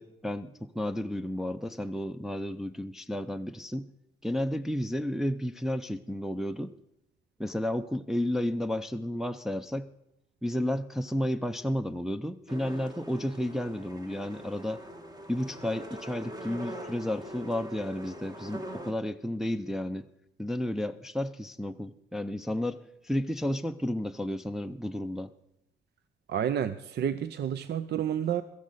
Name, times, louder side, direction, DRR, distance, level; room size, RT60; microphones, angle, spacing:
voice 1, 0.0-3.9 4.2-6.7 7.4-9.9 10.4-14.8 15.3-20.0 20.4-22.8 23.0-25.3, left 1 dB, ahead, 6 dB, 0.5 m, -32 dB
sound 1, 12.5-18.9, right 1 dB, 20° right, 1.4 m, -43 dB
voice 2, 26.3-28.4, right 9 dB, 60° right, 13 dB, 0.6 m, -30 dB
16.5 x 14.0 x 4.0 m, 0.83 s
cardioid pair, 90°, 20 cm